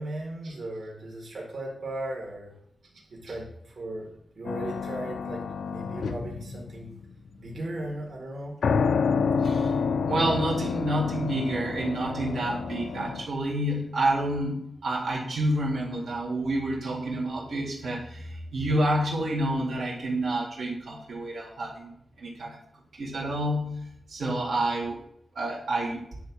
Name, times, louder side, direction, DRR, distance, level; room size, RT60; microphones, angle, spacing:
voice 1, 0.0-2.5 3.1-7.0 7.4-8.5, right 1 dB, 60° right, -2 dB, 1.8 m, -37 dB
sound 1, 4.5-7.1 8.6-13.3, left 5 dB, 90° left, 0.4 m, -29 dB
voice 2, 9.4-9.8 10.1-21.9 22.2-22.6 23.0-25.0 25.4-26.0, right 1 dB, 85° right, -4 dB, 1.9 m, -29 dB
9.2 x 3.6 x 6.0 m, 0.74 s
wide cardioid pair, 155°, 0 cm